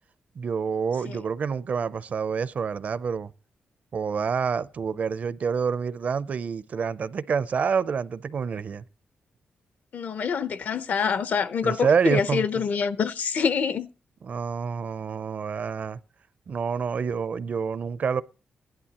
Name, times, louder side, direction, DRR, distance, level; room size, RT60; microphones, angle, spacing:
voice 1, 0.4-3.3 3.9-8.8 11.6-12.6 14.2-16.0 16.5-18.2, right 6 dB, 45° right, 0.5 m, -27 dB
voice 2, 9.9-13.9, left 6 dB, 55° left, 0.7 m, -26 dB
16.5 x 11.0 x 2.9 m
wide cardioid pair, 160°, 3 cm